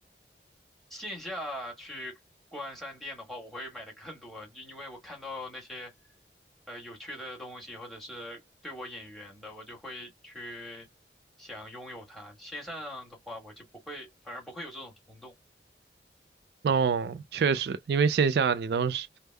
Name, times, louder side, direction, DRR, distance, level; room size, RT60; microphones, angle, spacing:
voice 1, 0.9-2.2 2.5-5.9 6.7-10.9 11.4-15.3, left 1 dB, ahead, 1.5 m, -41 dB
voice 2, 16.6-19.1, right 6 dB, 70° right, 0.3 m, -25 dB
3.4 x 2.1 x 3.3 m
head